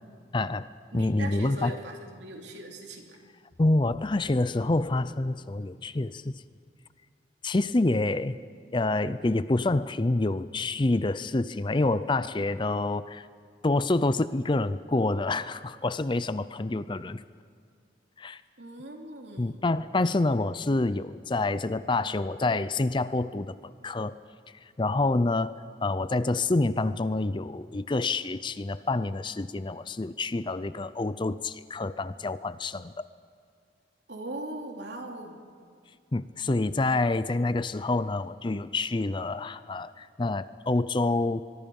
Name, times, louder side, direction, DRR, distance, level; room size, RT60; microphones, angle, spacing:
voice 1, 0.3-1.8 3.6-6.3 7.4-8.4 8.7-13.3 13.6-17.2 18.2-18.4 19.4-24.2 24.8-33.1 36.1-41.5, left 2 dB, 25° left, 15 dB, 0.5 m, -27 dB
voice 2, 0.9-3.2 18.6-19.6 34.1-35.4, right 2 dB, 75° right, 2 dB, 3.0 m, -40 dB
23.5 x 23.0 x 5.5 m, 2.2 s
head